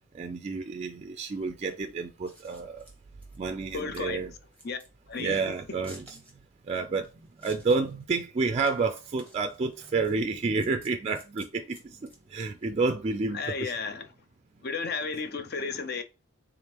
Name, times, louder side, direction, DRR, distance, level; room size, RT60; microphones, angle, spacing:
voice 1, 0.1-2.8 3.4-4.3 5.2-6.2 6.7-7.1 7.4-13.7, right 4 dB, 30° right, 0.3 m, -30 dB
Scissors, 2.1-12.7, equal, 5° left, 1.2 m, -55 dB
voice 2, 3.7-4.3 4.6-4.8 5.1-5.4 13.3-14.1 14.6-16.0, left 4 dB, 55° left, 0.6 m, -33 dB
3.5 x 3.5 x 2.9 m
head